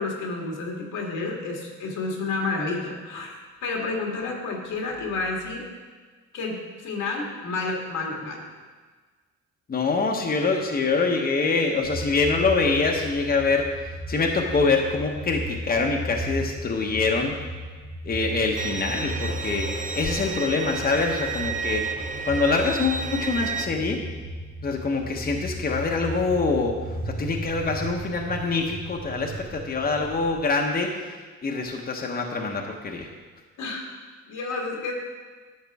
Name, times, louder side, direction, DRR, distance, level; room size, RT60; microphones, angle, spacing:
voice 1, 0.0-3.3 3.6-5.7 6.3-8.4 33.6-33.9 34.3-34.9, left 3 dB, 80° left, 0 dB, 1.9 m, -30 dB
voice 2, 9.7-17.3 18.0-24.0 24.6-26.8 27.0-31.1 31.4-33.1, left 4 dB, 30° left, 1 dB, 1.0 m, -25 dB
sound 1, 11.8-30.4, equal, 60° right, 3.0 m, -36 dB
Bowed string instrument, 18.6-23.6, right 5 dB, 25° right, 0.5 m, -32 dB
11.0 x 7.3 x 3.6 m, 1.4 s
cardioid pair, 90°, 30 cm